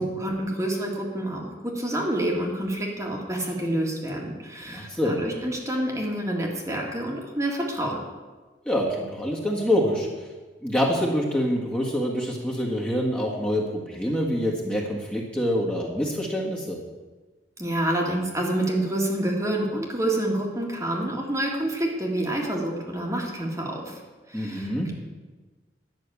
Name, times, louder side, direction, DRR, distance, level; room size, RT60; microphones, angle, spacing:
voice 1, 0.0-8.0 17.6-24.0 24.3-24.9, right 1 dB, 20° right, -1 dB, 1.8 m, -28 dB
voice 2, 4.7-5.2 8.6-10.1 10.6-16.8 24.3-24.9, equal, 5° left, -4 dB, 1.7 m, -26 dB
11.0 x 6.4 x 8.3 m, 1.3 s
head